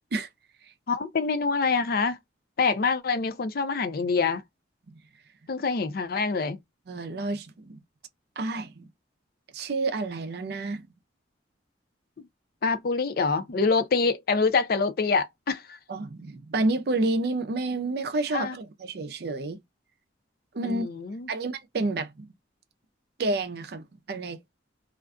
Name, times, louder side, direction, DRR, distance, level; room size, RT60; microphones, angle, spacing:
voice 1, 0.9-2.2 2.6-4.4 5.5-6.6 12.6-15.8 18.3-18.6 20.6-21.3, left 4 dB, 55° left, 0.4 m, -25 dB
voice 2, 6.9-7.8 8.4-8.9 9.5-10.8 15.9-19.6 20.5-20.9 21.3-22.3 23.2-24.4, right 2 dB, 55° right, 0.5 m, -29 dB
2.4 x 2.2 x 2.4 m
head